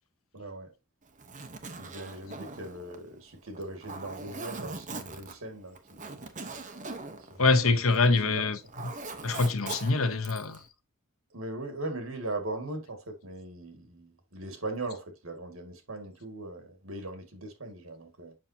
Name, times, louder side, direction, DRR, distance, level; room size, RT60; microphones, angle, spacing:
voice 1, 0.3-0.7 1.8-6.0 7.3-8.4 11.3-18.3, right 2 dB, 75° right, 2.2 m, -39 dB
Zipper (clothing), 1.1-8.2 8.5-10.6, right 3 dB, 35° right, 1.0 m, -41 dB
voice 2, 7.4-8.9 9.2-10.6, left 3 dB, 80° left, 1.0 m, -25 dB
7.5 x 5.8 x 2.8 m
head